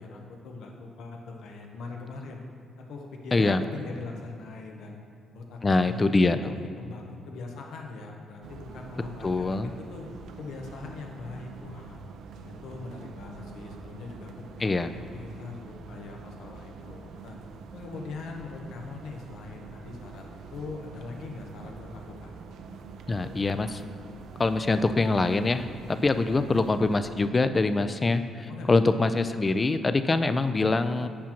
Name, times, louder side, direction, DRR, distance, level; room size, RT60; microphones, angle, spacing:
voice 1, 0.0-2.4 2.8-5.0 5.3-10.1 10.4-12.0 12.4-17.4 17.7-22.3 26.2-26.4 28.5-29.3, left 3 dB, 80° left, 1 dB, 0.8 m, -41 dB
voice 2, 3.3-3.6 5.6-6.5 9.2-9.7 14.6-14.9 23.1-23.8 24.4-25.6 26.0-31.1, left 3 dB, 25° left, 10 dB, 0.3 m, -24 dB
sound 1, 8.4-27.2, right 4 dB, 75° right, 0.4 m, -45 dB
8.5 x 5.7 x 2.9 m, 2.2 s
cardioid pair, 90°, 0 cm